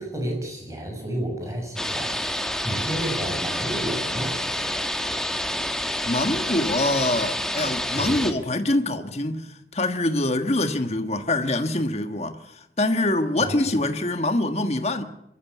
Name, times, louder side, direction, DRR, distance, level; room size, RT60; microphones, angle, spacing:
voice 1, 0.0-4.8 8.0-8.2 13.4-13.7, right 1 dB, 20° right, 6.9 m, -31 dB
sound 1, 1.8-8.3, left 1 dB, 5° left, 1.3 m, -28 dB
voice 2, 6.0-15.0, left 2 dB, 35° left, 1.5 m, -25 dB
25.5 x 14.0 x 8.4 m
head